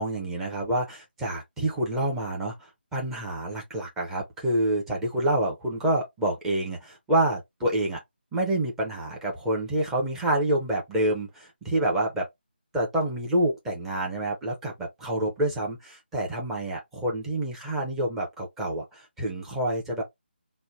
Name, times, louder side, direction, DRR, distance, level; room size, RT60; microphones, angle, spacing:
voice 1, 0.0-2.5 2.9-8.0 8.3-12.3 12.7-20.0, right 1 dB, 5° right, 0.6 m, -27 dB
3.1 x 2.1 x 3.9 m
figure-of-eight pair, 165°, 6 cm